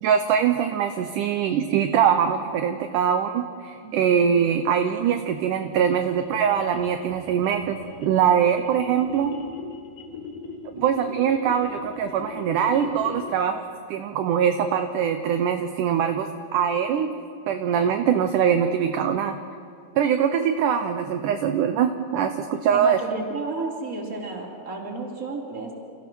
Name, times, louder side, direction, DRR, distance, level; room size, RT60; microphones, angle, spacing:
voice 1, 0.0-9.3 10.7-13.6 13.9-17.1 17.5-19.4 20.0-23.0, right 8 dB, 75° right, 7 dB, 2.0 m, -23 dB
voice 2, 3.8-4.3 22.7-25.7, right 3 dB, 25° right, -1 dB, 3.0 m, -32 dB
sound 1, 4.9-13.5, left 4 dB, 60° left, 3.1 m, -40 dB
29.0 x 15.5 x 6.2 m, 2.3 s
omnidirectional pair, 4.4 m